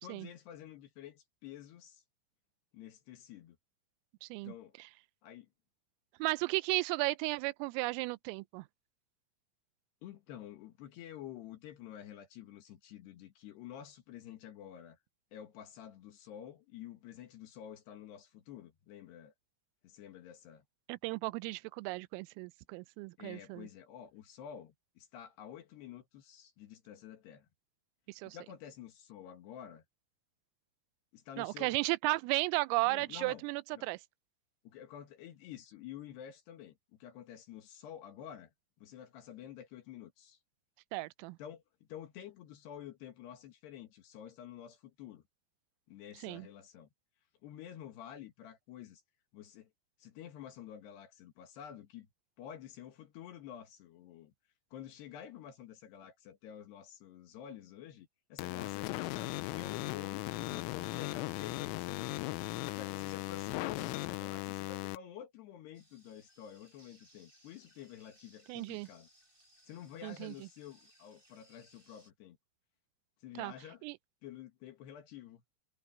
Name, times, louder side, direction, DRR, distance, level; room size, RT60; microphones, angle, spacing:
voice 1, 0.0-2.0 2.7-3.6 4.4-4.8 5.2-5.5 10.0-15.0 15.3-19.3 19.8-20.6 23.2-27.5 28.2-29.8 31.1-31.8 32.8-33.4 33.7-33.8 34.6-38.5 38.8-40.4 41.4-45.2 45.9-46.9 47.4-49.0 49.3-49.7 50.0-52.1 52.4-54.3 54.7-62.4 62.7-69.1 69.6-72.4 73.2-73.9 74.2-75.4, left 10 dB, 65° left, 3.2 m, -50 dB
voice 2, 4.2-4.5 6.2-8.7 20.9-23.7 28.1-28.4 31.4-34.0 40.9-41.4 46.2-46.5 68.5-68.9 70.0-70.3 73.4-73.5 73.8-74.0, right 23 dB, 85° right, 3.2 m, -34 dB
sound 1, 58.4-65.0, left 19 dB, 85° left, 3.3 m, -38 dB
sound 2, 65.7-72.1, equal, 10° right, 6.4 m, -65 dB
omnidirectional pair, 5.9 m